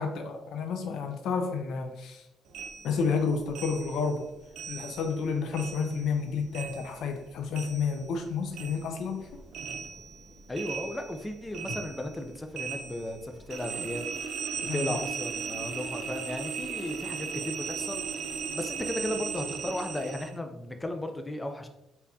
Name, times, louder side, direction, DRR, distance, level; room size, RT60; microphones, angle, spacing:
voice 1, 0.0-2.2 2.8-4.2 4.7-9.3 14.6-15.0, left 5 dB, 80° left, 5 dB, 0.5 m, -30 dB
sound 1, 2.5-5.3 5.5-8.3 8.5-20.3, right 6 dB, 75° right, 0.6 m, -37 dB
voice 2, 10.5-14.1 14.6-18.2 18.5-21.7, left 1 dB, 15° left, 5 dB, 0.5 m, -35 dB
4.2 x 3.5 x 2.7 m, 0.90 s
cardioid pair, 90°, 0 cm